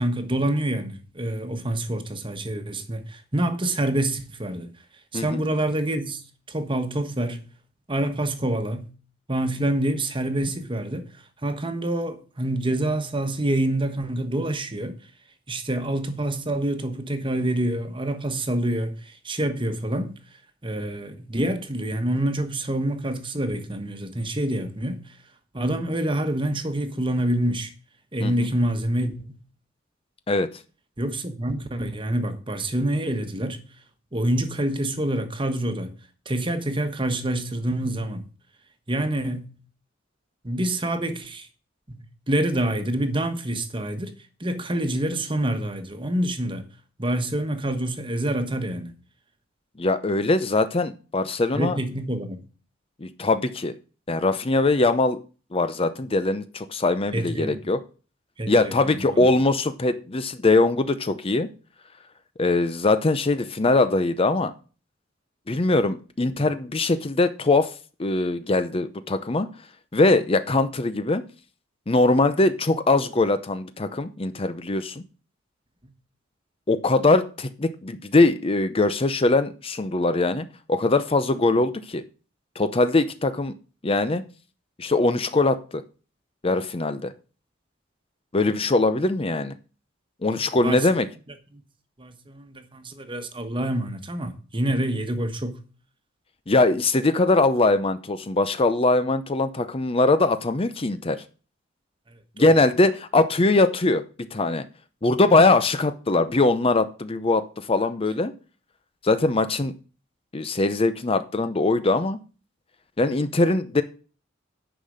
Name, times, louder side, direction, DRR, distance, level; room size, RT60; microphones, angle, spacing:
voice 1, 0.0-4.7 5.1-6.2 6.5-7.4 7.9-8.9 9.3-11.1 11.4-15.0 15.5-20.1 20.6-25.0 25.5-27.7 28.1-29.4 31.0-33.6 34.1-36.0 36.3-38.2 38.9-39.4 40.4-41.5 41.9-44.1 44.4-46.6 47.0-48.9 51.5-52.4 57.1-57.6 58.4-59.3 66.4-66.5 90.4-90.8 92.0-95.6 102.4-102.5, right 1 dB, 25° right, 1.3 m, -27 dB
voice 2, 49.8-51.8 53.0-53.7 54.1-55.2 55.5-57.8 58.5-61.5 62.4-64.5 65.5-67.7 68.0-69.5 69.9-71.2 71.9-75.0 76.7-82.0 82.6-83.5 83.8-84.2 84.8-85.8 86.4-87.1 88.3-89.5 90.2-91.1 96.5-101.2 102.4-104.0 104.3-104.6 105.0-108.3 109.0-109.7 110.3-112.2 113.0-113.8, left 2 dB, 30° left, 0.6 m, -21 dB
10.0 x 5.7 x 6.4 m
head